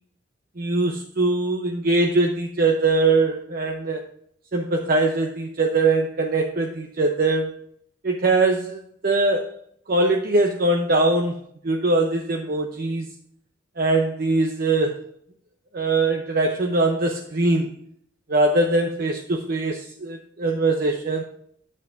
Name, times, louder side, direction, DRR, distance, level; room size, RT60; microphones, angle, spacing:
voice 1, 0.6-4.0 4.5-7.5 8.0-9.5 9.9-13.1 13.8-15.0 15.7-17.7 18.3-21.2, right 2 dB, 50° right, 3 dB, 0.8 m, -22 dB
9.4 x 8.6 x 2.6 m, 0.65 s
head